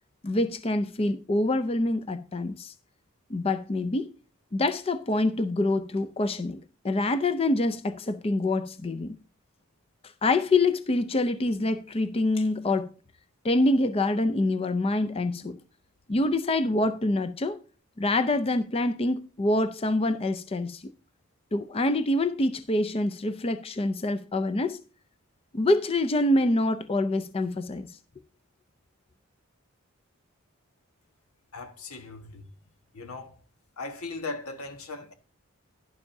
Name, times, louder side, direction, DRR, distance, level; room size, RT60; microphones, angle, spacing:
voice 1, 0.2-2.7 3.3-4.1 4.5-9.2 10.2-12.9 13.4-15.6 16.1-17.6 18.0-20.8 21.5-24.8 25.5-27.9, left 2 dB, 25° left, 0.5 m, -26 dB
voice 2, 31.5-32.5 32.9-33.4 33.8-35.1, left 3 dB, 85° left, 1.4 m, -38 dB
11.5 x 11.0 x 2.7 m
head